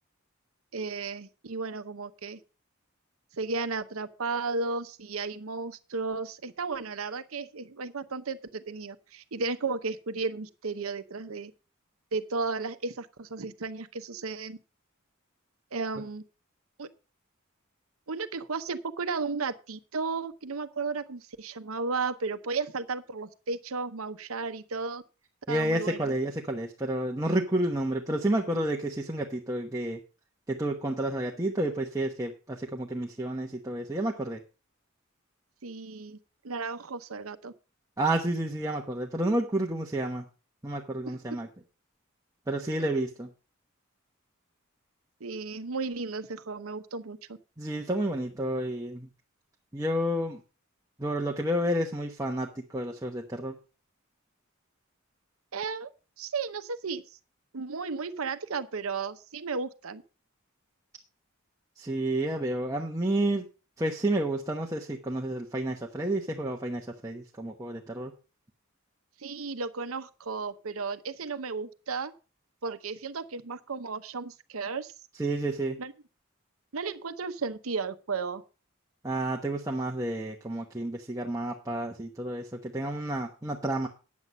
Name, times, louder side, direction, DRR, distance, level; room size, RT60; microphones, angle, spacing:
voice 1, 0.7-2.4 3.3-11.5 12.1-14.6 15.7-16.2 16.8-16.9 18.1-25.0 25.5-26.1 35.6-36.2 36.4-37.5 42.8-42.9 45.2-47.4 55.5-55.9 56.2-57.2 57.5-60.0 69.2-72.1 72.6-74.9 75.8-75.9 76.7-78.4, right 4 dB, 85° right, 10 dB, 0.8 m, -34 dB
voice 2, 25.5-30.0 30.5-34.4 38.0-40.2 40.6-41.5 42.5-43.3 47.6-49.1 49.7-50.4 51.0-53.5 61.8-63.5 63.8-68.1 75.2-75.8 79.0-83.9, right 1 dB, 15° right, 0 dB, 1.0 m, -30 dB
9.6 x 8.2 x 5.3 m, 0.33 s
head